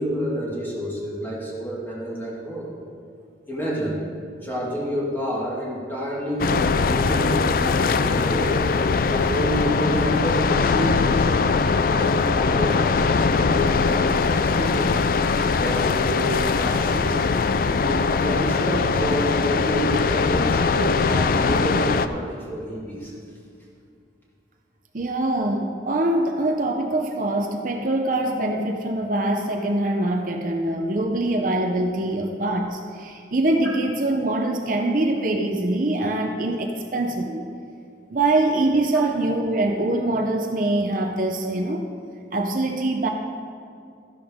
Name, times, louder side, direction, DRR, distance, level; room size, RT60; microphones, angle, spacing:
voice 1, 0.0-2.7 3.5-4.1 4.4-8.6 9.1-11.3 11.9-15.1 15.5-17.2 17.7-23.1, equal, 10° left, -5 dB, 2.0 m, -29 dB
sound 1, 6.4-22.1, left 4 dB, 50° left, 0.3 m, -21 dB
voice 2, 24.9-37.5 38.1-41.8 42.3-43.1, right 2 dB, 45° right, 2 dB, 0.7 m, -23 dB
13.0 x 11.0 x 3.6 m, 2.4 s
head